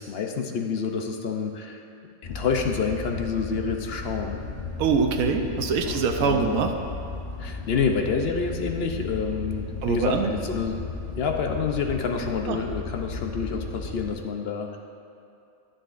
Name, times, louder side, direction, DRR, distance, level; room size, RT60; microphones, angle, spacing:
voice 1, 0.0-1.8 2.3-4.4 5.9-6.0 6.2-6.6 7.4-10.8 11.2-14.8, left 5 dB, 60° left, 3 dB, 0.7 m, -28 dB
sound 1, 2.2-14.1, left 4 dB, 40° left, 1.0 m, -35 dB
voice 2, 4.8-6.7 9.8-10.3 12.5-12.6, right 5 dB, 75° right, 4 dB, 1.1 m, -24 dB
9.9 x 9.9 x 2.5 m, 2.6 s
omnidirectional pair, 1.5 m